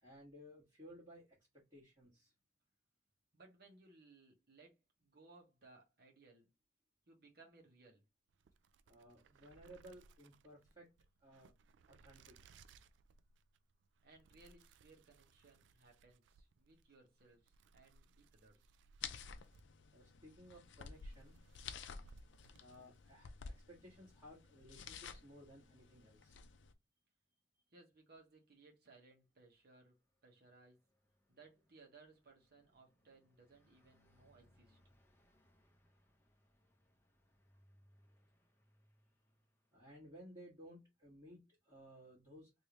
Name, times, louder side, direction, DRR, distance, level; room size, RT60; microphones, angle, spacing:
voice 1, 0.0-1.4 1.7-2.3 8.9-10.9 11.2-11.5 11.9-12.6 19.9-21.4 22.6-26.4 39.7-42.5, equal, 25° right, 1.6 m, -58 dB
voice 2, 3.3-6.5 7.1-8.0 14.0-18.8 27.7-30.0 30.2-30.8 31.3-34.8, right 3 dB, 55° right, 1.1 m, -64 dB
sound 1, 8.3-23.2, right 3 dB, 80° right, 0.3 m, -66 dB
sound 2, 19.0-26.7, left 6 dB, 75° left, 0.4 m, -52 dB
Car passing by, 29.4-40.4, equal, 15° left, 0.6 m, -74 dB
3.3 x 2.7 x 2.9 m
head